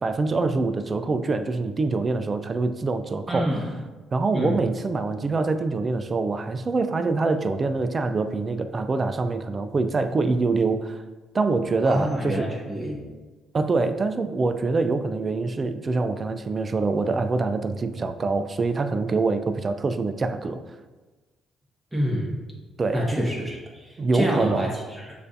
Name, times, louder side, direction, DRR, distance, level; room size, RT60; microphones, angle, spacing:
voice 1, 0.0-3.5 4.1-11.0 11.3-12.5 13.5-20.6 22.8-23.2 24.0-24.6, right 3 dB, 35° right, 9 dB, 0.3 m, -25 dB
voice 2, 3.3-3.7 4.3-4.6 11.8-13.0 21.9-22.3 22.9-25.1, equal, 15° right, -4 dB, 1.3 m, -27 dB
6.5 x 2.5 x 2.6 m, 1.2 s
supercardioid pair, 70°, 0 cm